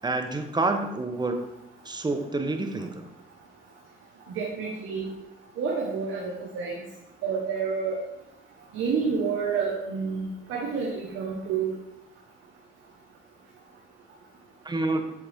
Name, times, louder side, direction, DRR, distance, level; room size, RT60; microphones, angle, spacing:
voice 1, 0.0-1.4 1.8-3.1 14.6-15.1, right 2 dB, 20° right, 6 dB, 1.1 m, -28 dB
voice 2, 4.3-5.1 5.6-6.8 7.2-8.0 8.7-11.7, right 5 dB, 80° right, -2 dB, 1.4 m, -29 dB
8.3 x 6.8 x 3.6 m, 0.86 s
cardioid pair, 90°, 20 cm